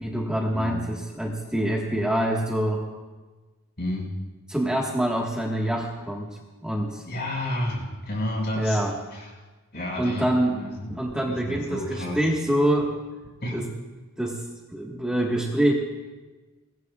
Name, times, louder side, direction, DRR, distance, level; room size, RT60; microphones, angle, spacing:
voice 1, 0.0-2.8 4.5-7.0 8.5-8.9 10.0-10.6 10.9-12.9 13.5-13.7 14.2-14.4 14.7-15.7, right 1 dB, 5° right, -2 dB, 1.6 m, -25 dB
voice 2, 3.8-4.1 7.0-8.8 9.1-9.3 9.7-11.0 11.3-12.2 13.4-13.6, left 1 dB, 50° left, -2 dB, 5.9 m, -31 dB
24.5 x 20.0 x 2.4 m, 1.2 s
head